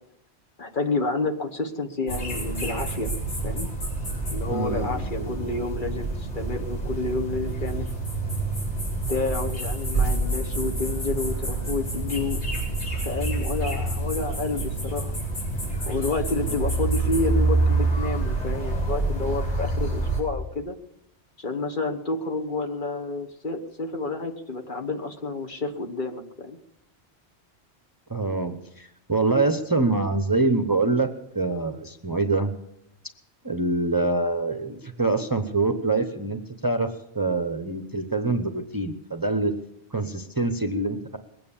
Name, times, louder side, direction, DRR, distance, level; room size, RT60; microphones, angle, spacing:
voice 1, 0.6-3.1 3.4-3.7 4.3-7.9 9.1-12.4 13.0-15.1 15.9-20.8 21.4-26.6, left 3 dB, 50° left, 5 dB, 1.4 m, -29 dB
sound 1, 2.1-20.2, right 2 dB, 90° left, 5.9 m, -27 dB
voice 2, 4.5-5.3 28.1-31.1 31.3-32.5 33.4-36.9 37.1-39.5 39.9-41.2, right 3 dB, 20° right, 6 dB, 0.8 m, -25 dB
21.0 x 9.1 x 7.2 m, 0.80 s
omnidirectional pair, 1.1 m